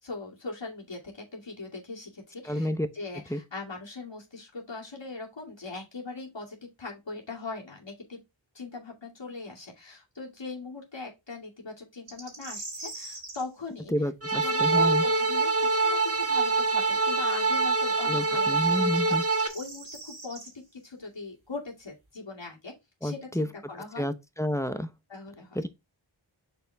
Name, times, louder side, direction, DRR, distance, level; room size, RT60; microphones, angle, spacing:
voice 1, 0.0-8.2 8.5-19.2 19.5-22.7 23.0-24.1 25.1-25.7, left 3 dB, 60° left, 2.4 m, -41 dB
voice 2, 2.5-2.9 3.3-3.4 13.9-15.0 18.1-19.2 23.0-23.5 24.0-24.9 25.5-25.7, equal, 5° left, 0.7 m, -29 dB
sound 1, 12.1-13.4 16.6-16.7 18.8-20.5, right 2 dB, 65° right, 2.4 m, -42 dB
sound 2, 14.2-19.5, right 3 dB, 30° right, 1.2 m, -25 dB
6.8 x 4.4 x 3.4 m
wide cardioid pair, 55°, 50 cm